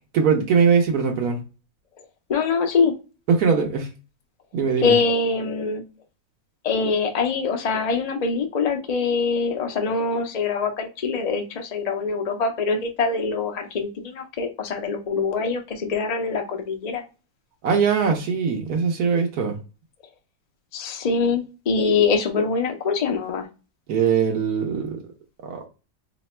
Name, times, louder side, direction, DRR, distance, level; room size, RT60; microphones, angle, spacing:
voice 1, 0.1-1.4 3.3-3.9 4.5-4.9 17.6-19.6 23.9-25.0 25.4-25.6, right 6 dB, 85° right, 1.3 m, -21 dB
voice 2, 2.3-3.0 4.8-5.8 6.6-17.0 20.7-23.5, left 4 dB, 60° left, 0.4 m, -24 dB
3.3 x 2.1 x 4.2 m
omnidirectional pair, 1.6 m